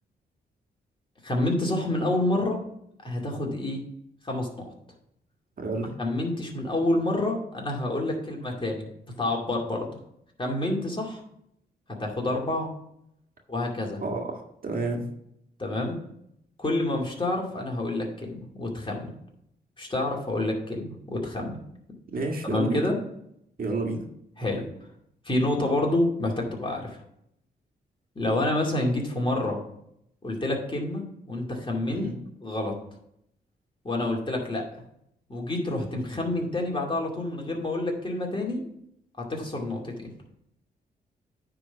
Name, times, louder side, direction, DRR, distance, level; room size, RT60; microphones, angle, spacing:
voice 1, 1.2-2.6 3.0-3.8 4.2-4.6 6.0-8.9 9.2-9.9 10.4-11.2 11.9-12.7 13.5-14.0 15.6-16.0 16.6-19.1 19.8-21.6 22.4-23.0 24.4-24.6 25.3-27.0 28.2-29.6 30.2-32.1 32.4-32.8 33.8-34.6 35.3-38.6 39.2-40.1, left 2 dB, 30° left, -1 dB, 2.4 m, -28 dB
voice 2, 5.6-5.9 14.0-15.0 22.1-22.9 23.6-24.1 31.9-32.2, right 2 dB, 55° right, 2 dB, 1.7 m, -30 dB
9.6 x 3.8 x 5.8 m, 0.75 s
cardioid pair, 65°, 18 cm